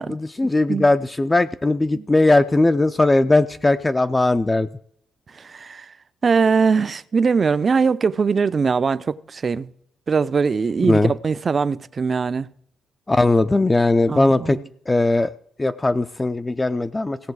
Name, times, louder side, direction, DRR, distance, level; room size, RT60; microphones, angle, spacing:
voice 1, 0.0-4.7 10.8-11.1 13.1-14.6 14.9-15.3 15.6-17.2, left 2 dB, 20° left, 0.5 m, -19 dB
voice 2, 5.3-5.9 6.2-9.7 10.1-12.5 14.1-14.6, right 5 dB, 40° right, 0.6 m, -21 dB
17.0 x 6.8 x 4.7 m
cardioid pair, 90°, 0 cm